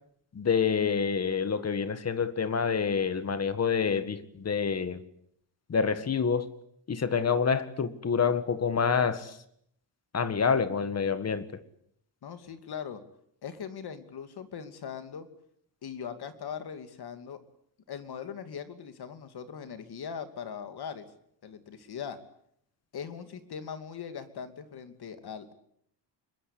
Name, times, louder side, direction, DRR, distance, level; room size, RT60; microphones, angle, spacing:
voice 1, 0.3-5.0 5.7-6.5 6.9-9.4 10.1-11.5, left 6 dB, 35° left, 13 dB, 1.7 m, -27 dB
voice 2, 12.2-13.0 13.4-15.3 15.8-17.4 17.9-21.1 21.4-22.2 22.9-25.5, left 7 dB, 60° left, 9 dB, 2.7 m, -40 dB
26.0 x 22.0 x 8.5 m, 0.71 s
wide cardioid pair, 165°, 44 cm